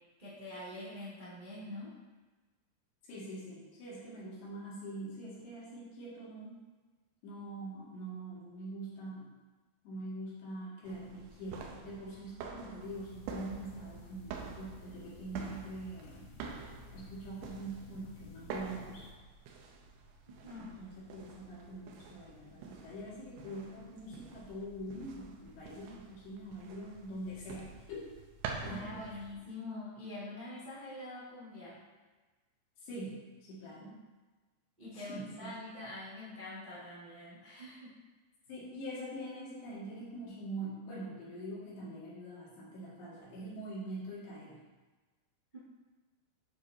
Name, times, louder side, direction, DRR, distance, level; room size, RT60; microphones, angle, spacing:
voice 1, 0.2-1.9 12.5-12.8 20.3-20.7 28.6-31.8 34.8-37.9, left 2 dB, 20° right, -9 dB, 1.2 m, -45 dB
voice 2, 3.1-6.6 7.2-9.3 9.8-16.3 16.9-19.1 20.5-28.1 28.6-29.0 32.8-34.0 34.9-35.5 38.5-44.6, right 1 dB, 65° left, -8 dB, 4.1 m, -44 dB
sound 1, 10.9-29.4, right 5 dB, 80° right, 2.7 m, -47 dB
sound 2, 12.8-19.1, left 3 dB, 85° left, 2.2 m, -54 dB
9.4 x 7.1 x 2.8 m, 1.3 s
omnidirectional pair, 5.5 m